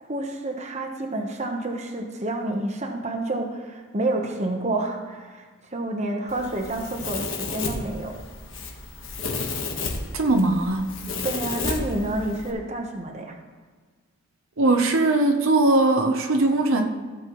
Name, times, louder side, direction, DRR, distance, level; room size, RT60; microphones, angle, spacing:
voice 1, 0.1-5.4 5.7-8.2 11.2-13.3, right 2 dB, 30° right, 2 dB, 1.1 m, -29 dB
Domestic sounds home sounds, 6.3-12.5, left 3 dB, 65° left, 1.4 m, -32 dB
voice 2, 10.1-10.9 14.6-16.8, right 2 dB, 70° right, 3 dB, 0.9 m, -20 dB
16.5 x 7.5 x 3.1 m, 1.5 s
head